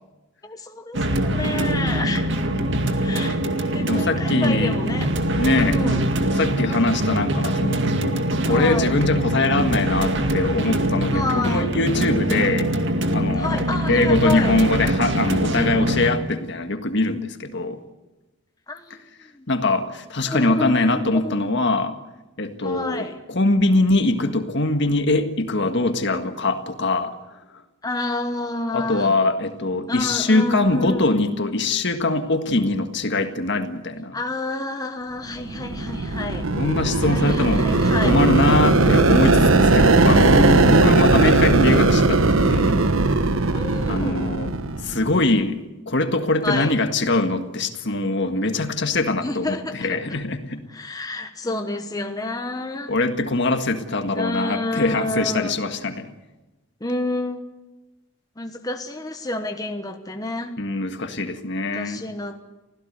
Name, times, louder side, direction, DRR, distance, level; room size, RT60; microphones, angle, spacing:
voice 1, 0.4-2.4 3.0-3.4 3.7-5.1 5.6-6.1 8.5-8.9 11.1-11.8 13.4-14.6 18.7-19.0 19.3-19.5 20.2-21.5 22.6-23.2 27.8-29.1 29.9-31.2 34.1-36.5 37.1-38.2 40.2-41.0 41.4-41.8 43.5-44.3 46.4-46.9 49.2-50.2 50.7-53.0 54.1-55.6 56.8-57.5 58.4-60.6 61.7-62.4, left 2 dB, 20° left, 5 dB, 1.1 m, -29 dB
sound 1, 0.9-16.1, right 1 dB, 60° right, 2.1 m, -23 dB
voice 2, 3.9-4.8 5.2-5.8 6.4-12.7 13.1-13.6 13.9-17.8 19.5-21.9 22.4-27.2 28.7-34.1 36.6-37.8 38.0-42.8 43.9-44.5 44.8-45.6 45.9-50.6 52.9-56.1 60.6-62.0, left 2 dB, 60° left, 7 dB, 1.7 m, -22 dB
sound 2, 35.4-45.2, right 2 dB, 75° right, 1.2 m, -18 dB
25.0 x 16.0 x 8.1 m, 1.1 s
head